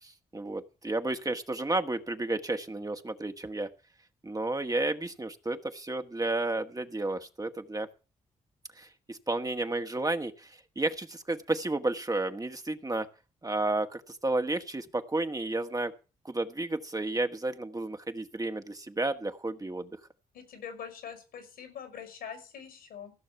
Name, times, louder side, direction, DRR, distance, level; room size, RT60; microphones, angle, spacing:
voice 1, 0.0-3.7 4.2-7.9 8.8-13.1 13.4-15.9 16.2-19.9, right 2 dB, 25° right, 7 dB, 1.5 m, -32 dB
voice 2, 20.3-23.1, left 7 dB, 80° left, 8 dB, 5.5 m, -43 dB
15.5 x 6.4 x 7.0 m, 0.34 s
hypercardioid pair, 40°, 16 cm